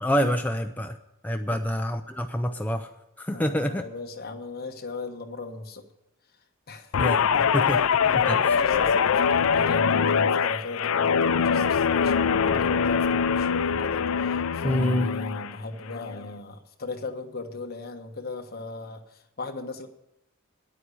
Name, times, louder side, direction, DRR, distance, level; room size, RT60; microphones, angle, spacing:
voice 1, 0.0-1.0 1.2-2.9 3.2-3.8 7.0-7.8 8.3-8.6 14.6-15.1, equal, 10° left, 5 dB, 0.5 m, -27 dB
voice 2, 3.3-5.8 6.7-7.0 7.3-7.5 8.1-19.9, left 3 dB, 45° left, 5 dB, 1.2 m, -37 dB
Guitar, 6.9-15.5 15.9-16.2, left 6 dB, 75° left, 0.5 m, -23 dB
10.5 x 9.1 x 8.3 m, 0.84 s
head